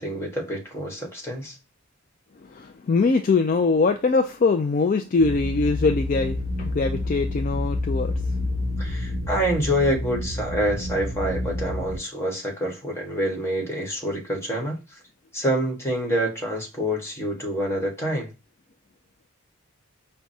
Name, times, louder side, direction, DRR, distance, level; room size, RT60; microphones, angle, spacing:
voice 1, 0.0-1.6 8.8-15.0 15.3-18.3, equal, 10° left, 1.3 m, -27 dB
voice 2, 2.5-8.1, left 4 dB, 40° left, 0.3 m, -22 dB
sound 1, 5.2-12.0, left 2 dB, 60° right, 0.9 m, -28 dB
5.9 x 2.2 x 2.6 m
head